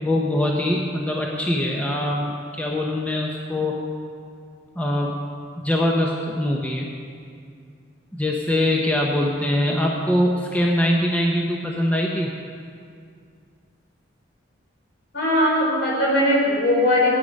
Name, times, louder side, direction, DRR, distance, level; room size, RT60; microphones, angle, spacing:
voice 1, 0.0-3.8 4.8-5.2 5.6-6.9 8.1-12.3, left 1 dB, 10° left, -2 dB, 0.9 m, -23 dB
voice 2, 15.1-17.2, left 1 dB, 60° left, -4 dB, 4.1 m, -19 dB
16.5 x 9.7 x 5.4 m, 2.3 s
head